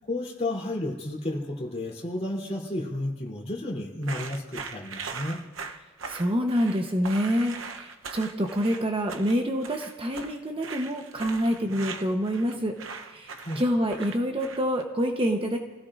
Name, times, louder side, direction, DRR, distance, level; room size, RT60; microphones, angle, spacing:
voice 1, 0.1-5.4 13.4-13.6, left 1 dB, 35° left, -2 dB, 3.2 m, -32 dB
sound 1, 4.0-14.8, right 5 dB, 85° right, 0.9 m, -40 dB
voice 2, 6.1-15.6, equal, 25° right, 3 dB, 0.9 m, -27 dB
29.0 x 16.5 x 2.5 m, 1.3 s
head